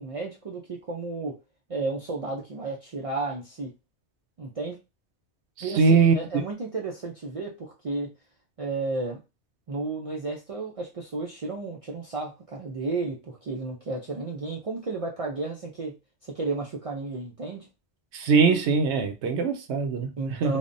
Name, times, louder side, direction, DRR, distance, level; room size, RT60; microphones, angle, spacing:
voice 1, 0.0-1.4 1.7-3.7 4.4-4.8 5.6-8.1 8.6-9.2 9.7-15.9 16.2-17.7 20.2-20.6, right 3 dB, 60° right, 0.3 m, -33 dB
voice 2, 5.6-6.1 18.1-20.1 20.4-20.6, right 5 dB, 85° right, 0.9 m, -21 dB
3.3 x 2.1 x 2.5 m
omnidirectional pair, 1.1 m